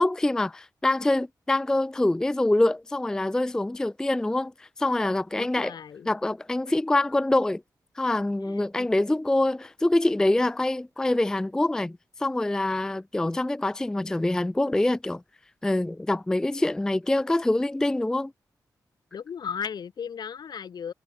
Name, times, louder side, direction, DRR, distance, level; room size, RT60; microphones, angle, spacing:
voice 1, 0.0-5.7 6.1-7.6 8.0-15.2 15.6-18.3, left 2 dB, 10° left, 0.3 m, -25 dB
voice 2, 5.3-6.1 8.4-8.9 19.1-20.9, left 7 dB, 70° left, 6.2 m, -36 dB
wide cardioid pair, 130°, 7 cm